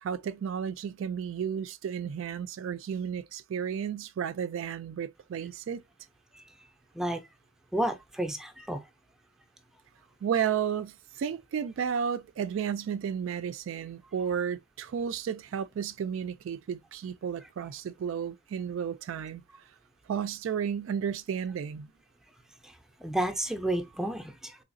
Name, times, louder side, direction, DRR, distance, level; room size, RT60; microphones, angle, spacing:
voice 1, 0.0-5.8 10.2-19.4 20.1-21.9, right 7 dB, 60° right, 0.3 m, -33 dB
voice 2, 7.7-8.8 22.6-22.7 23.0-24.6, right 1 dB, ahead, 0.5 m, -31 dB
3.8 x 3.1 x 2.6 m
head